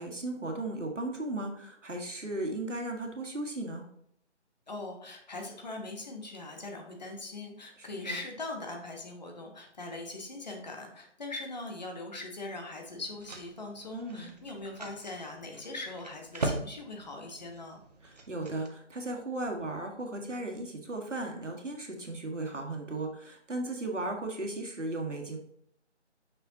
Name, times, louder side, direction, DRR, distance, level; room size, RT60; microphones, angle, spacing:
voice 1, 0.0-3.8 7.8-8.2 13.9-14.3 18.0-25.4, right 2 dB, 85° right, 2 dB, 1.6 m, -36 dB
voice 2, 4.7-17.8, left 2 dB, 35° left, 2 dB, 1.0 m, -41 dB
sound 1, 12.8-18.7, right 2 dB, 35° right, 0.7 m, -40 dB
6.0 x 5.6 x 2.8 m, 0.68 s
figure-of-eight pair, 155°, 36 cm